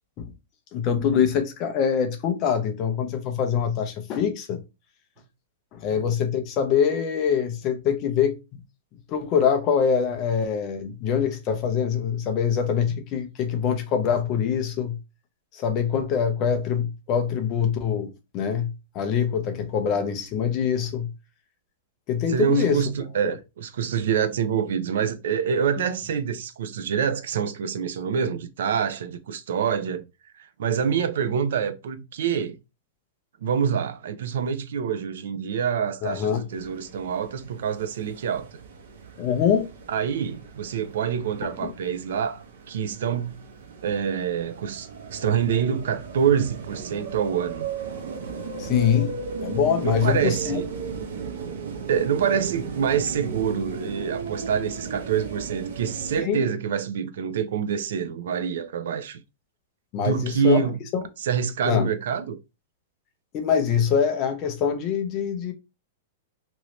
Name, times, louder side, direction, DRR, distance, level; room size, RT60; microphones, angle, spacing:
voice 1, 0.7-4.6 5.7-8.4 9.1-15.0 15.5-21.1 22.1-22.8 23.2-23.3 36.0-36.4 39.2-39.7 41.6-41.7 48.6-50.6 56.2-56.4 59.9-61.0 61.6-61.9 63.3-65.5, left 7 dB, 25° left, 0.5 m, -24 dB
voice 2, 22.3-30.1 30.4-32.6 33.4-38.5 39.9-43.4 43.8-47.7 49.8-50.7 51.9-59.2 60.0-60.8 61.2-62.4, right 7 dB, 65° right, 0.4 m, -26 dB
sound 1, 36.5-56.2, right 5 dB, 85° right, 0.9 m, -36 dB
3.0 x 2.6 x 3.0 m
supercardioid pair, 175°, 0 cm